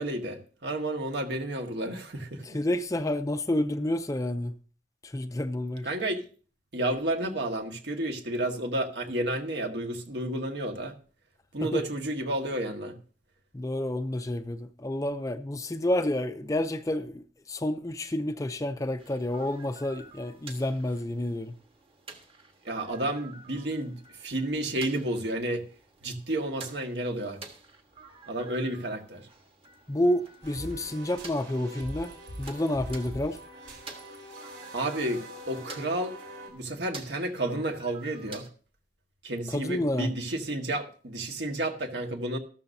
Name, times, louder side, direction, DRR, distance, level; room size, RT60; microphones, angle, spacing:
voice 1, 0.0-2.6 5.8-6.2 6.7-10.9 11.5-12.9 22.6-25.7 26.0-27.4 28.3-29.3 34.7-36.1 36.5-38.4 39.2-42.4, right 1 dB, 65° right, 1.6 m, -31 dB
voice 2, 2.4-4.5 5.0-5.9 11.6-11.8 13.5-21.5 29.9-32.1 32.4-33.4 39.5-40.1, left 1 dB, 20° left, 0.5 m, -29 dB
sound 1, 19.0-38.5, right 3 dB, 30° right, 1.4 m, -50 dB
sound 2, 30.4-36.5, equal, 80° right, 3.8 m, -43 dB
13.5 x 13.0 x 2.7 m
head